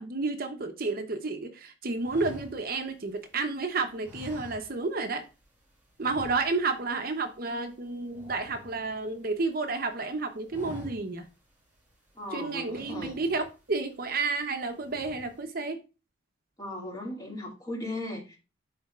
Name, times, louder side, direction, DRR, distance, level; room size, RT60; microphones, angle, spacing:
voice 1, 0.0-5.2 6.0-11.3 12.3-15.8, right 3 dB, 50° right, 0.8 m, -31 dB
sound 1, 2.0-3.5 4.0-5.1 5.4-5.6 6.0-6.9 7.1-7.4 7.7-9.4 9.8-10.1 10.4-11.3 11.7-11.8 12.6-13.7 14.2-14.5 14.8-15.4, left 1 dB, 10° right, 2.7 m, -47 dB
voice 2, 12.1-13.1 16.6-18.4, left 1 dB, 20° left, 2.2 m, -37 dB
11.0 x 4.0 x 2.4 m
head